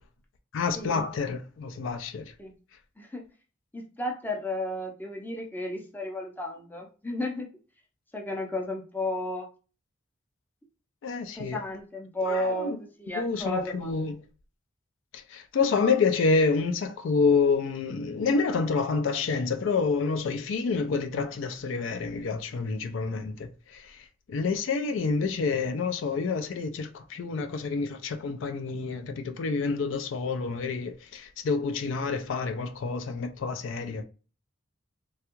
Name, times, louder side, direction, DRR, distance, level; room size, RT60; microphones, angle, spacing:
voice 1, 0.5-2.3 11.0-11.6 12.2-12.8 13.1-14.2 15.1-24.0 24.3-34.0, left 4 dB, 65° left, 0.3 m, -28 dB
voice 2, 3.7-7.5 8.1-9.5 11.3-13.9, left 1 dB, 10° left, 0.5 m, -33 dB
3.3 x 2.3 x 2.9 m
head